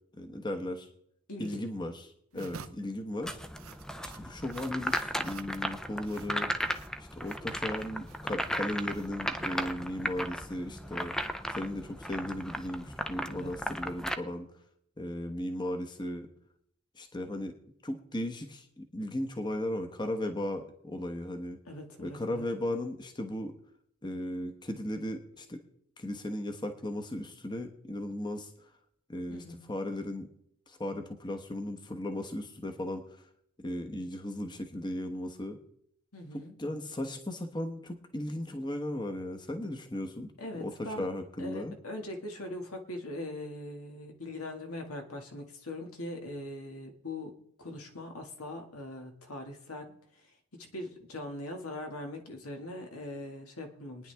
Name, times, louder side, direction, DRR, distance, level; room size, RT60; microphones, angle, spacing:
voice 1, 0.1-0.9 1.4-3.4 4.0-6.5 7.2-11.2 11.5-14.5 15.0-16.3 16.9-17.5 17.8-21.6 22.0-23.6 24.0-25.6 26.0-28.7 29.1-30.3 30.7-33.3 33.6-35.6 36.3-41.7, left 1 dB, 20° left, 5 dB, 1.0 m, -36 dB
voice 2, 1.3-1.6 2.3-2.7 13.3-13.5 21.7-22.4 29.3-29.7 36.1-36.9 40.4-41.1 41.4-50.3 50.5-54.1, left 1 dB, 80° left, 3 dB, 1.9 m, -41 dB
sound 1, 2.3-10.2, right 6 dB, 70° right, 0.7 m, -52 dB
sound 2, 3.2-14.1, equal, 5° left, 0.5 m, -36 dB
23.5 x 9.9 x 3.4 m, 0.72 s
head